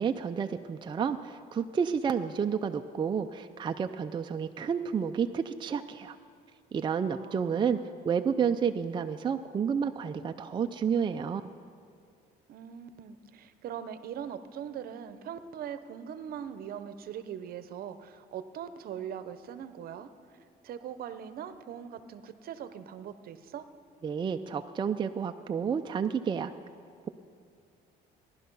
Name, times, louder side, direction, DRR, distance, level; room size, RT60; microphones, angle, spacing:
voice 1, 0.0-6.2 6.7-7.8 8.0-11.4 24.0-26.5, right 7 dB, 30° right, 6 dB, 0.5 m, -30 dB
voice 2, 7.2-7.9 12.5-20.1 20.6-23.7, right 8 dB, 60° right, 11 dB, 0.8 m, -41 dB
17.5 x 11.5 x 5.5 m, 2.3 s
cardioid pair, 110°, 17 cm